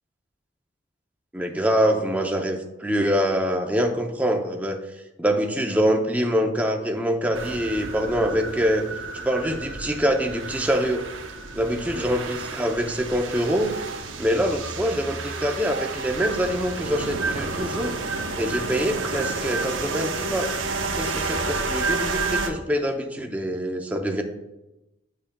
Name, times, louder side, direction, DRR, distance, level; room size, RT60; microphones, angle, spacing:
voice 1, 1.3-4.8 5.2-8.8 9.2-11.0 11.5-13.7 14.2-17.9 18.4-20.5 20.9-24.2, equal, 10° right, 3 dB, 0.5 m, -24 dB
sound 1, 7.3-22.5, right 3 dB, 85° right, 0.8 m, -30 dB
9.5 x 5.6 x 2.2 m, 0.97 s
head